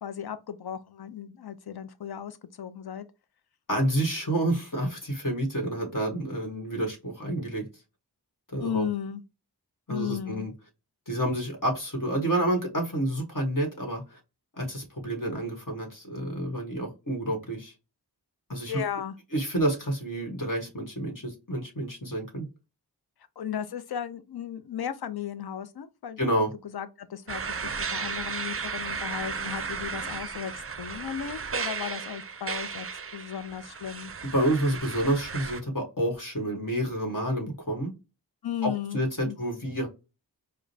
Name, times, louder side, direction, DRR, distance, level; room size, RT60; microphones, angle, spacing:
voice 1, 0.0-3.0 8.6-9.2 9.9-10.5 18.7-19.1 23.4-32.9 33.1-34.1 38.4-39.4, left 9 dB, 70° left, 0.5 m, -35 dB
voice 2, 3.7-7.6 8.5-8.9 9.9-10.5 11.1-14.2 14.6-17.7 18.5-18.7 19.3-22.5 26.2-26.5 34.3-37.9 38.6-39.9, right 1 dB, 55° left, 1.4 m, -29 dB
sound 1, 27.3-35.6, right 5 dB, 35° right, 0.4 m, -34 dB
4.8 x 2.2 x 2.6 m
wide cardioid pair, 40°, 39 cm